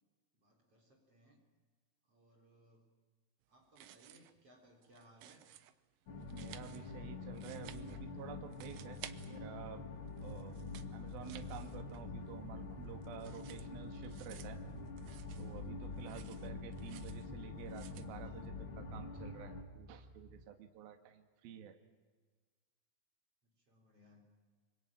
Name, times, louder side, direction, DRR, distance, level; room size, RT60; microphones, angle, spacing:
voice 1, 0.4-1.4 2.1-2.9 3.5-5.5 23.4-24.3, equal, 30° right, 1 dB, 4.3 m, -65 dB
sound 1, 3.6-4.4 4.7-5.7 6.2-8.2 8.5-9.8 10.1-12.2 12.5-15.7 16.0-17.3 17.7-18.1, right 13 dB, 90° right, 2.0 m, -56 dB
sound 2, 6.1-19.6, left 3 dB, 55° left, 1.4 m, -46 dB
voice 2, 6.3-9.0 9.3-9.8 10.2-10.6 10.9-14.6 15.4-21.8, right 9 dB, 60° right, 6 dB, 3.1 m, -51 dB
sound 3, 11.0-20.4, right 2 dB, 10° right, 4.1 m, -57 dB
25.5 x 24.0 x 8.9 m, 1.5 s
omnidirectional pair, 5.5 m